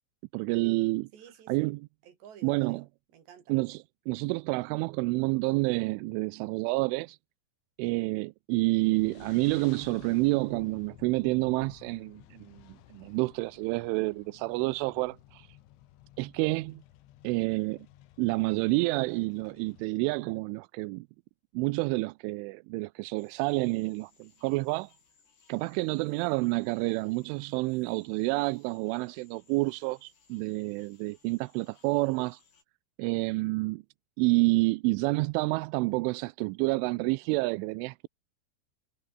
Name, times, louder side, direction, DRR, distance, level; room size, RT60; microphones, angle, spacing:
voice 1, 0.3-1.1 1.5-1.9 2.4-2.8 3.5-7.2 7.8-15.5 16.2-16.8 17.2-17.9 18.2-21.1 21.5-24.9 25.5-32.4 33.0-33.8 34.2-38.1, right 24 dB, 85° right, 3.0 m, -29 dB
voice 2, 1.1-1.8 2.0-3.6, right 8 dB, 60° right, 5.4 m, -52 dB
sound 1, 8.8-19.9, left 14 dB, 75° left, 3.6 m, -54 dB
sound 2, 23.2-32.6, left 5 dB, 60° left, 8.2 m, -65 dB
omnidirectional pair, 5.7 m